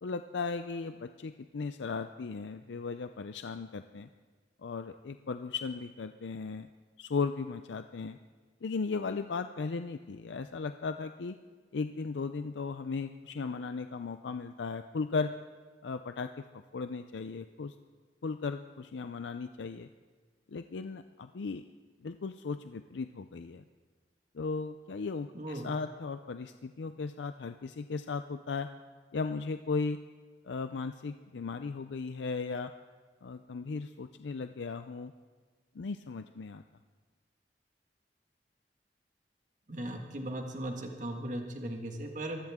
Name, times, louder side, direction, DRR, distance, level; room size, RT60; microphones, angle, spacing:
voice 1, 0.0-4.1 4.6-6.7 7.0-8.2 8.6-11.3 11.7-15.3 15.8-16.4 16.7-17.7 18.2-19.9 20.5-21.6 22.0-23.6 24.3-28.7 29.1-30.0 30.4-32.7 33.2-35.1 35.8-36.6, left 4 dB, 90° left, 9 dB, 0.5 m, -36 dB
voice 2, 25.3-25.7 39.7-42.4, right 1 dB, 45° right, 2 dB, 1.7 m, -37 dB
23.0 x 15.5 x 3.7 m, 1.5 s
head